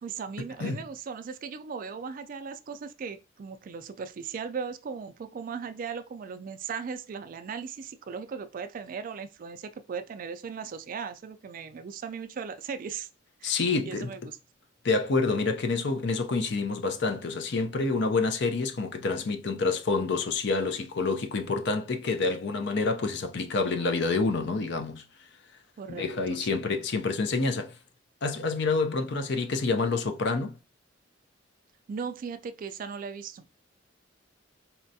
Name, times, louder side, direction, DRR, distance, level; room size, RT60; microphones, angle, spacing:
voice 1, 0.0-13.1 13.4-14.4 25.8-26.6 31.9-33.4, right 6 dB, 45° right, 0.3 m, -38 dB
voice 2, 13.4-14.1 14.8-25.0 25.9-27.8 28.2-30.5, left 3 dB, 60° left, 0.5 m, -28 dB
4.1 x 2.3 x 2.6 m
head